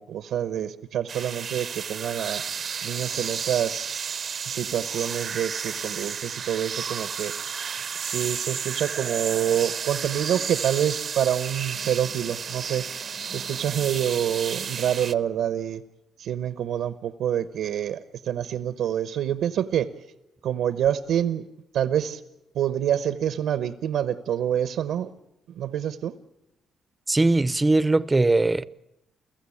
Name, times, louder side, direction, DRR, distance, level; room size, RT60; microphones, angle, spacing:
voice 1, 0.0-2.4 2.8-3.9 4.5-7.3 8.0-12.9 13.3-15.8 16.2-19.9 20.4-21.5 21.7-22.2 22.5-25.1 25.5-26.1, right 10 dB, 80° right, 1.0 m, -27 dB
sound 1, 1.1-15.1, right 6 dB, 50° right, 0.8 m, -32 dB
voice 2, 27.1-28.7, right 2 dB, 20° right, 0.8 m, -20 dB
29.5 x 15.0 x 8.5 m
cardioid pair, 90°, 0 cm